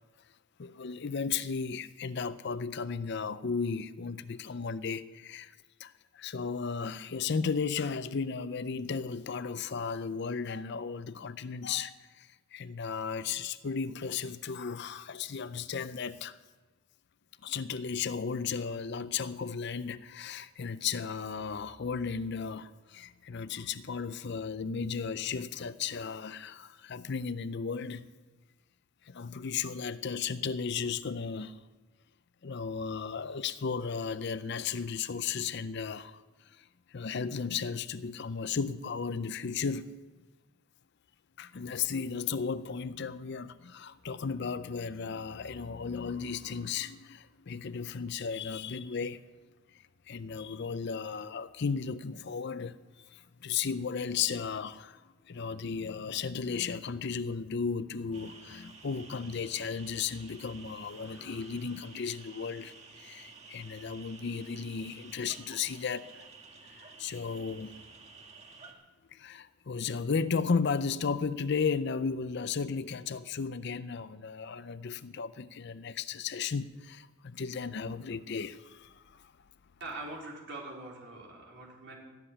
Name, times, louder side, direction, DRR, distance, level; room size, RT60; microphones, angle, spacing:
voice 1, 0.6-5.6 5.8-16.4 17.4-28.1 29.0-31.6 32.4-40.0 41.4-49.2 49.7-66.2 66.7-67.8 69.1-79.3, left 5 dB, 55° left, 0.5 m, -35 dB
sound 1, 58.1-68.7, right 4 dB, 30° right, 1.5 m, -52 dB
voice 2, 79.8-82.0, right 2 dB, 55° right, 4.1 m, -43 dB
13.5 x 7.8 x 9.9 m
head